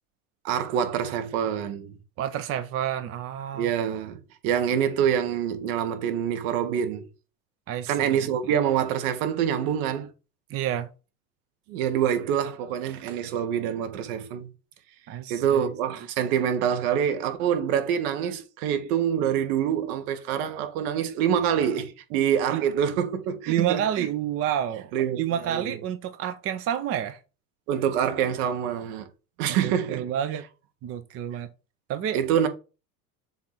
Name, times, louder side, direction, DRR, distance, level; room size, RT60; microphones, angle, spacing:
voice 1, 0.4-1.9 3.5-7.1 7.9-10.1 11.7-14.5 15.3-24.1 24.9-25.7 27.7-29.1 29.4-30.1 32.1-32.5, right 9 dB, 65° right, 1.3 m, -26 dB
voice 2, 2.2-3.7 7.7-8.3 10.5-10.9 15.1-15.7 22.5-22.6 23.5-24.9 25.2-27.2 29.6-30.4 30.8-31.5 31.9-32.2, right 10 dB, 30° right, 0.5 m, -29 dB
7.1 x 2.5 x 5.7 m
hypercardioid pair, 90°, 47 cm